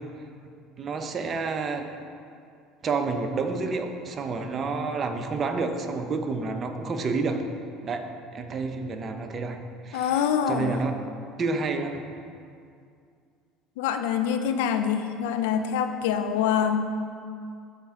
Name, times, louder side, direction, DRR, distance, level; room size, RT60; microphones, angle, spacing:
voice 1, 0.8-1.9 2.8-7.4 7.8-8.1 8.3-9.6 9.8-10.9 11.4-12.0, right 4 dB, 40° right, 5 dB, 0.8 m, -29 dB
voice 2, 9.9-10.8 13.8-16.9, left 8 dB, 80° left, 7 dB, 0.5 m, -25 dB
12.0 x 4.4 x 3.7 m, 2.4 s
supercardioid pair, 85°, 0 cm